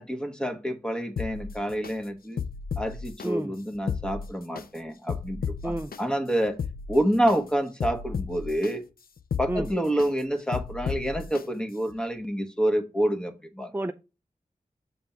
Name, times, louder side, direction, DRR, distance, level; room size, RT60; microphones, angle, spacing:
voice 1, 0.0-2.4 2.8-6.6 6.9-8.8 9.4-13.7, equal, 5° left, 1.2 m, -28 dB
sound 1, 1.2-1.9 2.4-3.3 3.7-4.6 5.1-6.0 6.4-7.4 7.8-8.7 9.2-10.1 10.5-11.4 11.9-12.0, left 6 dB, 85° left, 0.4 m, -33 dB
voice 2, 3.2-3.5 5.6-5.9 9.5-9.7 13.7-13.9, right 1 dB, 15° right, 0.4 m, -30 dB
6.8 x 3.4 x 5.6 m
wide cardioid pair, 40°, 15 cm